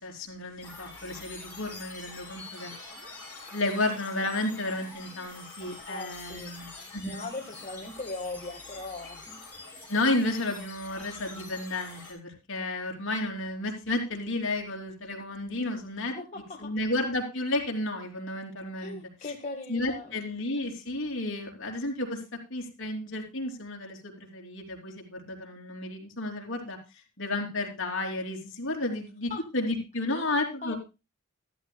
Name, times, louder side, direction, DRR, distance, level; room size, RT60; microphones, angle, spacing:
voice 1, 0.0-2.7 3.5-7.2 9.9-16.1 16.6-19.0 19.7-22.2 22.5-26.8 27.2-30.7, left 2 dB, 60° left, 1 dB, 3.3 m, -32 dB
sound 1, 0.6-12.1, left 3 dB, 10° left, 6.8 m, -45 dB
voice 2, 5.9-6.5 7.0-9.4 16.1-16.7 18.8-20.2 29.3-29.4 30.1-30.3 30.6-30.7, left 3 dB, 35° left, 0 dB, 1.7 m, -39 dB
13.5 x 13.5 x 2.3 m, 0.27 s
head